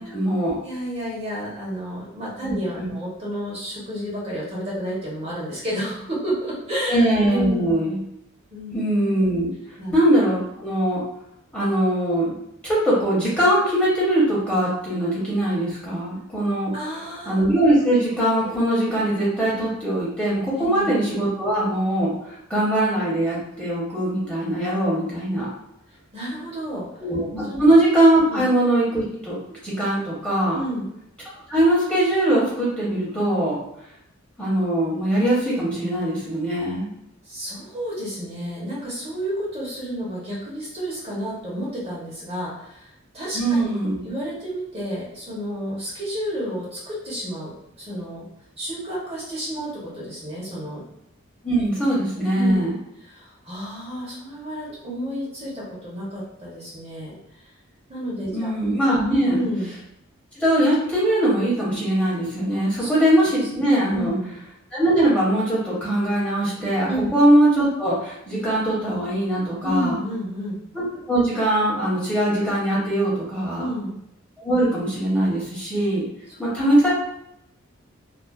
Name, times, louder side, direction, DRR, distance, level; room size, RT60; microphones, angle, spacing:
voice 1, 0.0-0.6 2.4-2.9 6.9-8.0 8.7-9.5 9.9-11.0 11.5-12.3 12.6-16.7 17.3-25.5 27.0-30.6 31.5-33.6 34.4-36.9 43.3-44.0 51.4-52.8 58.3-59.4 60.3-64.1 64.7-69.9 70.7-73.7 74.4-76.1 76.4-76.9, right 1 dB, 5° left, -8 dB, 0.8 m, -21 dB
voice 2, 0.6-7.7 8.5-8.8 9.8-10.0 16.7-17.5 20.6-20.9 26.1-27.0 27.4-27.6 28.3-28.4 30.5-30.9 37.3-43.7 44.0-48.2 48.6-50.8 52.3-52.6 53.0-57.5 57.9-58.5 59.2-59.7 62.8-62.9 63.9-64.4 66.9-67.1 69.6-70.6 73.6-74.0 76.3-76.4, equal, 30° right, -6 dB, 0.8 m, -31 dB
2.4 x 2.4 x 2.3 m, 0.80 s
head